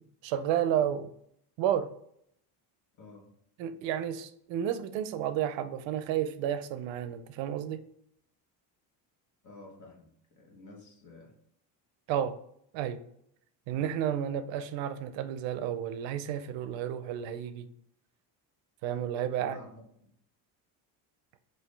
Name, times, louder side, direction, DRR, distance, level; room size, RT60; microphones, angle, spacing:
voice 1, 0.2-1.1 1.6-1.9 3.6-7.8 12.1-12.4 12.7-13.0 13.7-17.7 18.8-19.6, right 10 dB, 75° right, 11 dB, 0.5 m, -31 dB
voice 2, 3.0-3.3 9.4-11.3 19.4-20.1, left 3 dB, 40° left, -1 dB, 1.2 m, -51 dB
5.8 x 2.6 x 3.2 m, 0.70 s
cardioid pair, 165°, 45 cm